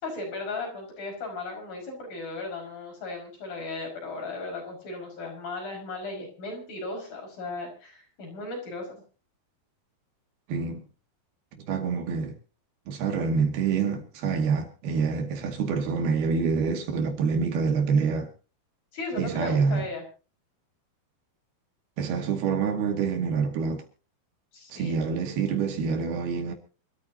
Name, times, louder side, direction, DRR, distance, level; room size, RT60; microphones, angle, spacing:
voice 1, 0.0-9.0 18.9-20.0 24.5-25.0, left 3 dB, 65° left, 7.3 m, -36 dB
voice 2, 10.5-10.8 11.6-12.4 12.9-18.3 19.2-19.8 22.0-23.8 24.7-26.5, right 5 dB, 90° right, 4.2 m, -26 dB
27.0 x 13.5 x 2.9 m
omnidirectional pair, 4.3 m